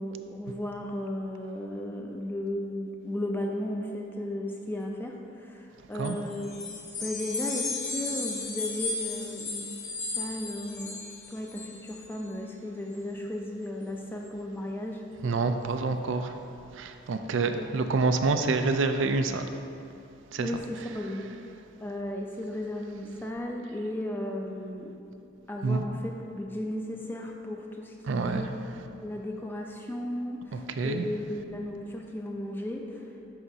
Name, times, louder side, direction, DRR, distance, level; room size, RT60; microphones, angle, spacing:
voice 1, 0.0-9.7 10.2-11.0 11.3-15.0 17.6-17.7 20.4-21.3 21.8-24.9 25.2-28.5 29.0-33.1, left 1 dB, 10° left, 1 dB, 0.5 m, -35 dB
voice 2, 5.8-6.2 15.2-19.6 20.2-21.1 25.6-25.8 28.0-28.9 30.5-31.1, right 3 dB, 70° right, 7 dB, 0.4 m, -28 dB
sound 1, 6.0-12.2, left 3 dB, 35° left, 0.8 m, -35 dB
11.5 x 4.9 x 2.7 m, 2.6 s
head